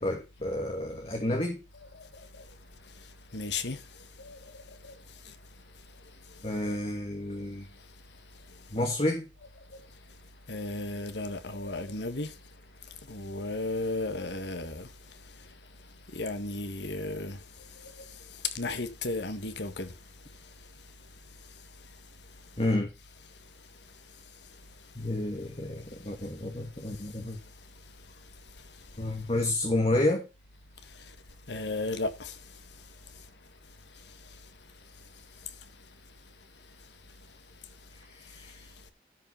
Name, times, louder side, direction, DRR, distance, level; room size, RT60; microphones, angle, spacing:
voice 1, 0.0-1.6 6.4-7.7 8.7-9.3 22.6-22.9 24.9-27.4 29.0-30.3 37.9-38.7, left 1 dB, 35° left, 1.7 m, -30 dB
voice 2, 3.3-3.8 4.2-4.4 4.8-4.9 10.5-12.3 13.1-14.9 16.1-17.4 18.5-19.9 31.5-32.3, left 2 dB, 75° left, 1.7 m, -34 dB
12.5 x 5.7 x 5.6 m
head